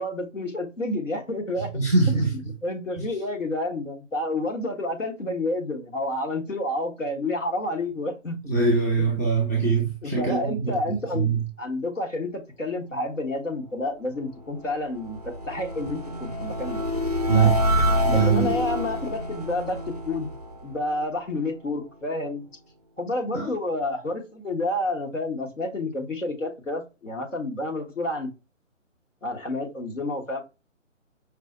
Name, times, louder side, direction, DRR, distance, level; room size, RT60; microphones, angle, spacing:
voice 1, 0.0-1.7 2.1-8.4 9.0-9.2 10.0-16.8 17.3-17.6 18.1-20.3 20.6-22.4 23.0-28.3 29.2-30.4, left 2 dB, 75° left, 1.4 m, -30 dB
voice 2, 1.7-2.3 8.5-10.8 11.1-11.4 17.3-17.6 18.0-18.5 23.3-23.5, right 4 dB, 15° left, 0.7 m, -22 dB
sound 1, 14.3-21.4, left 1 dB, 35° right, 0.4 m, -27 dB
5.2 x 2.1 x 2.6 m
figure-of-eight pair, 145°, 39 cm